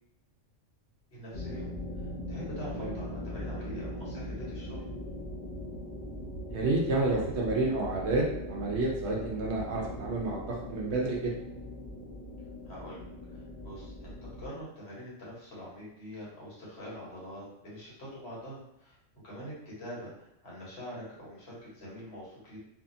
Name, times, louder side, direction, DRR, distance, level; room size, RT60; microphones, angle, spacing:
voice 1, 1.1-1.7 1.9-4.9 12.6-19.0 19.2-22.6, equal, 55° left, -6 dB, 1.3 m, -44 dB
sound 1, 1.3-14.5, left 1 dB, 25° right, 0.9 m, -40 dB
voice 2, 6.5-11.3, right 2 dB, 65° right, -2 dB, 0.9 m, -30 dB
2.7 x 2.6 x 2.5 m, 0.81 s
omnidirectional pair, 1.3 m